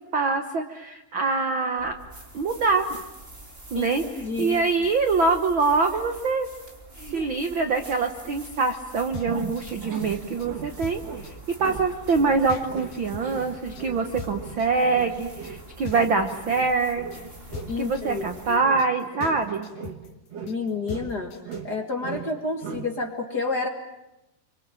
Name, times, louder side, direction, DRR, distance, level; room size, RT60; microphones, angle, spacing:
voice 1, 0.1-1.9 2.3-2.9 3.7-4.0 4.4-6.5 7.1-17.3 17.8-19.7 22.7-22.8, right 4 dB, 65° right, 6 dB, 1.2 m, -24 dB
sound 1, 1.8-18.6, right 1 dB, 15° right, 3.2 m, -45 dB
voice 2, 4.2-4.6 17.7-18.6 20.5-21.3 21.6-23.7, left 3 dB, 35° left, 3 dB, 1.9 m, -29 dB
sound 2, 8.3-21.7, left 5 dB, 75° left, 3.8 m, -41 dB
sound 3, 9.3-10.8 11.0-11.3 11.6-11.9 12.2-17.8 18.1-18.9 19.2-20.6 20.9-21.7 22.0-22.4 22.6-22.9, right 7 dB, 50° right, 2.5 m, -38 dB
28.0 x 25.0 x 7.7 m, 0.94 s
omnidirectional pair, 4.2 m